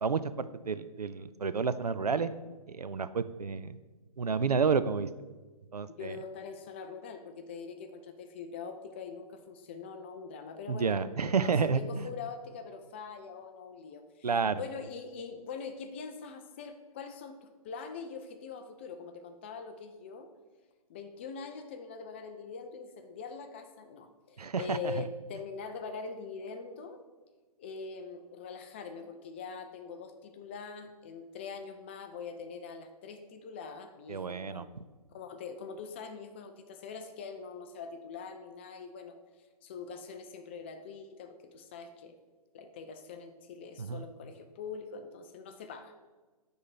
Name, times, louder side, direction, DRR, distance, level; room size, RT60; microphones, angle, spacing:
voice 1, 0.0-2.3 2.7-3.8 4.2-5.1 5.7-6.2 10.7-12.1 14.2-14.6 24.4-25.0 34.1-34.7 43.8-44.1, right 5 dB, 85° right, 13 dB, 0.4 m, -30 dB
voice 2, 6.0-20.3 20.9-27.0 27.6-34.6 35.1-42.2 42.5-45.9, left 5 dB, 20° left, 8 dB, 0.3 m, -43 dB
9.4 x 3.4 x 4.2 m, 1.3 s
figure-of-eight pair, 130°, 19 cm